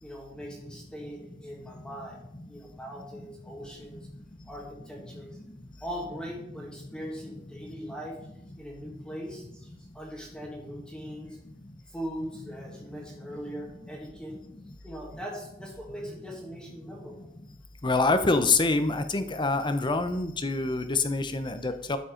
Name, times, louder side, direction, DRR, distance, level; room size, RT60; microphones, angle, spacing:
voice 1, 0.0-2.2 2.5-4.1 4.5-5.3 5.8-8.2 8.6-11.4 11.9-14.4 14.8-17.3, equal, 5° left, -2 dB, 1.8 m, -40 dB
voice 2, 17.8-22.0, left 3 dB, 25° left, 10 dB, 0.7 m, -26 dB
12.5 x 5.2 x 5.1 m, 0.80 s
head